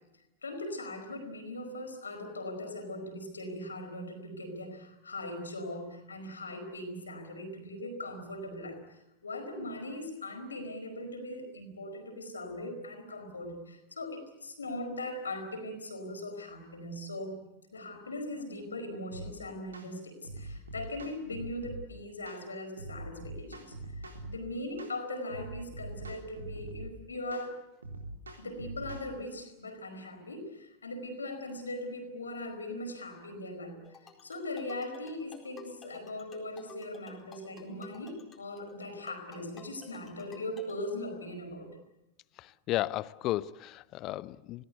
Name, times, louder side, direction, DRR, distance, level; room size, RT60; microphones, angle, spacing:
voice 1, 0.4-17.4 17.7-23.7 24.2-27.6 28.3-33.8 34.2-41.8, left 1 dB, 75° left, 4 dB, 4.7 m, -40 dB
sound 1, 19.1-19.3 19.7-19.9 20.2-21.8 22.3-22.4 22.8-24.4 24.8-25.0 25.3-26.9 27.3-27.5 27.8-29.1, right 2 dB, 75° right, 3.5 m, -43 dB
sound 2, 33.8-40.8, left 7 dB, 20° left, 4.3 m, -52 dB
voice 2, 42.4-44.6, left 15 dB, 35° left, 19 dB, 0.8 m, -34 dB
28.5 x 18.5 x 8.2 m, 0.93 s
figure-of-eight pair, 90°, 0 cm